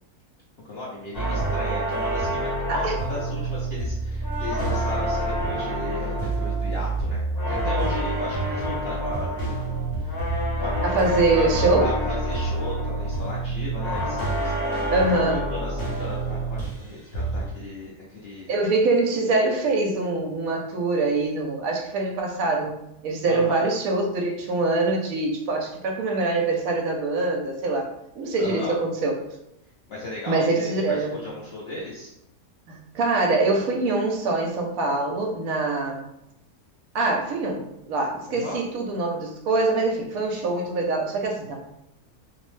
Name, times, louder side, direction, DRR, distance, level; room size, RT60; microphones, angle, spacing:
voice 1, 0.6-9.5 10.0-14.8 15.1-18.6 23.2-23.6 28.4-28.7 29.9-32.1 38.3-38.6, left 2 dB, 70° left, -6 dB, 0.6 m, -36 dB
sound 1, 1.1-16.9 17.1-17.6, right 1 dB, 50° left, 0.9 m, -27 dB
voice 2, 10.8-11.9 14.9-15.4 18.5-22.7 23.0-27.9 28.2-29.1 30.3-31.1 32.7-36.0 36.9-41.6, right 2 dB, 70° right, 1 dB, 0.9 m, -24 dB
2.7 x 2.0 x 3.0 m, 0.84 s
omnidirectional pair, 1.6 m